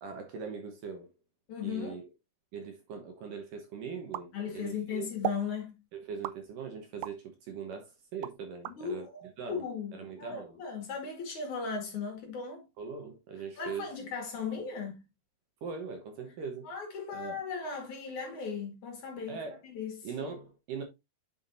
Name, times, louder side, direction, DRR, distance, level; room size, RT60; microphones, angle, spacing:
voice 1, 0.0-1.1 1.6-2.1 2.5-5.1 5.9-9.1 9.4-10.6 12.8-13.9 15.6-16.7 17.1-17.4 19.3-19.6 20.0-20.8, right 5 dB, 65° right, 2.4 m, -41 dB
voice 2, 1.5-2.0 4.3-5.7 8.7-12.6 13.6-15.0 16.6-20.1, left 6 dB, 50° left, 3.3 m, -37 dB
sound 1, 4.1-4.8 5.2-5.5 6.2-7.2 7.7-8.8, right 14 dB, 85° right, 2.2 m, -37 dB
9.4 x 5.9 x 2.7 m
omnidirectional pair, 4.7 m